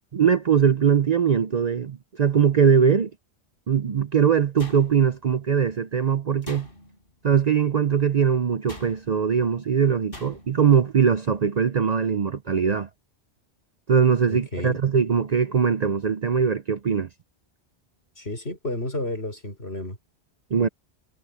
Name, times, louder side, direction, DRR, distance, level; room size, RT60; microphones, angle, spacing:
voice 1, 0.1-3.1 3.7-6.7 7.2-12.9 13.9-17.1 20.5-20.7, right 7 dB, 45° right, 0.6 m, -21 dB
sound 1, 4.6-5.3 6.4-7.1 8.7-9.3 10.1-10.7, left 1 dB, 55° left, 6.8 m, -42 dB
voice 2, 14.3-14.8 18.2-20.0, left 1 dB, 70° left, 6.1 m, -31 dB
omnidirectional pair, 1.1 m